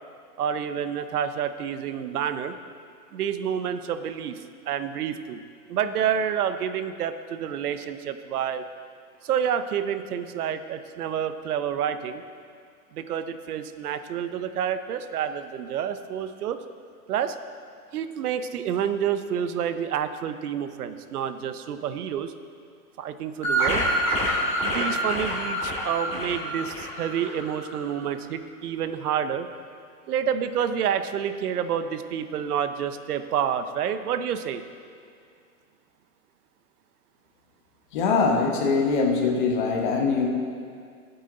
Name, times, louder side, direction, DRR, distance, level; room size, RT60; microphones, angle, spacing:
voice 1, 0.4-2.5 3.1-5.4 5.7-8.7 9.2-12.2 12.9-16.6 17.1-17.4 17.9-22.3 23.0-23.9 24.6-29.5 30.1-34.6, right 8 dB, 75° right, 10 dB, 0.8 m, -28 dB
sound 1, 23.4-27.8, right 1 dB, 15° left, 2.0 m, -27 dB
voice 2, 37.9-40.3, left 4 dB, 30° left, 1 dB, 1.0 m, -22 dB
14.5 x 8.1 x 3.9 m, 2.2 s
supercardioid pair, 170°, 46 cm